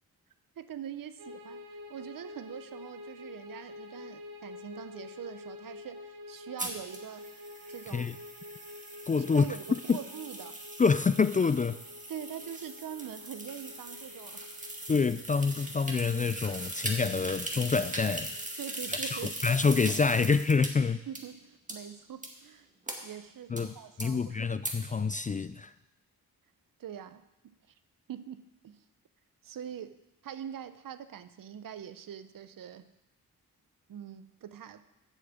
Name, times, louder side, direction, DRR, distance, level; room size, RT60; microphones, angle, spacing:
voice 1, 0.6-1.6 1.9-7.3 7.7-8.1 9.1-10.6 12.1-14.7 18.6-19.4 21.1-22.7 23.0-24.4 26.8-27.5 28.1-28.8 29.4-32.9 33.9-34.8, right 9 dB, 60° right, 13 dB, 0.7 m, -43 dB
sound 1, 1.2-19.5, left 2 dB, 90° right, 1.2 m, -49 dB
sound 2, 6.6-20.7 21.2-21.3 21.7-21.8 22.2-22.3 22.9-23.0 23.6-23.7 24.0-24.1 24.6-24.7, right 1 dB, 20° right, 2.1 m, -40 dB
voice 2, 9.1-9.5 9.9-10.0 10.8-11.8 14.9-18.3 18.9-21.0 23.5-23.7 24.0-25.7, left 5 dB, 20° left, 14 dB, 0.3 m, -27 dB
8.5 x 6.7 x 7.2 m, 0.98 s
supercardioid pair, 50°, 37 cm